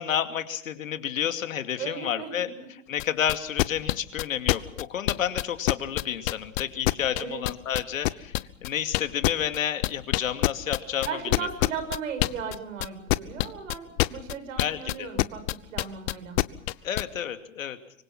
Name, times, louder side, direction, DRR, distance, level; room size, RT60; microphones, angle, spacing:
voice 1, 0.0-2.5 2.9-11.1 14.6-15.1 16.8-17.8, left 9 dB, 75° left, 8 dB, 2.6 m, -30 dB
voice 2, 1.8-2.3 7.2-7.5 11.0-16.4, right 6 dB, 70° right, 8 dB, 7.1 m, -36 dB
sound 1, 3.0-17.0, left 21 dB, 50° left, 1.0 m, -25 dB
25.0 x 24.5 x 6.0 m, 0.72 s
hypercardioid pair, 110°, 40 cm